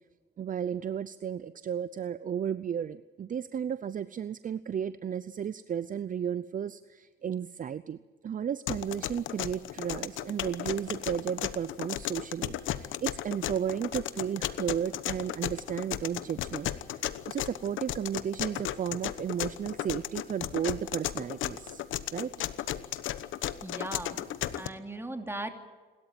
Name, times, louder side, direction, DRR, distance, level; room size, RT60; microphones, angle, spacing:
voice 1, 0.4-8.0 8.2-21.8 22.1-22.3, right 8 dB, 40° right, 16 dB, 0.6 m, -34 dB
sound 1, 8.7-24.7, left 12 dB, 80° left, 1.1 m, -35 dB
voice 2, 23.6-24.3 24.5-25.5, right 1 dB, 10° right, 6 dB, 3.0 m, -38 dB
28.5 x 13.0 x 9.1 m, 1.4 s
cardioid pair, 90°, 20 cm